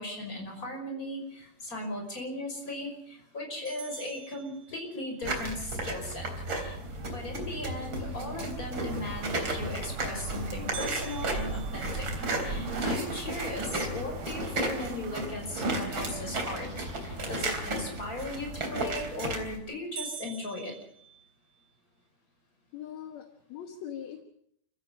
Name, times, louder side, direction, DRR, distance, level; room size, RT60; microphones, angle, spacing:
voice 1, 0.0-6.3 6.6-6.8 7.1-12.1 12.3-20.7, left 2 dB, 20° left, 2 dB, 6.0 m, -37 dB
sound 1, 3.7-5.2 10.7-12.9 13.4-13.5 14.0-14.1 14.8-15.1 18.7-19.1 19.5-19.6 20.0-21.7, right 10 dB, 55° right, 2.3 m, -45 dB
sound 2, 5.2-19.6, right 2 dB, 30° right, 3.9 m, -34 dB
sound 3, 8.8-15.2, right 7 dB, 75° right, 3.3 m, -47 dB
voice 2, 22.7-24.2, left 9 dB, 60° left, 6 dB, 2.2 m, -41 dB
29.5 x 16.0 x 5.5 m, 0.70 s
omnidirectional pair, 4.3 m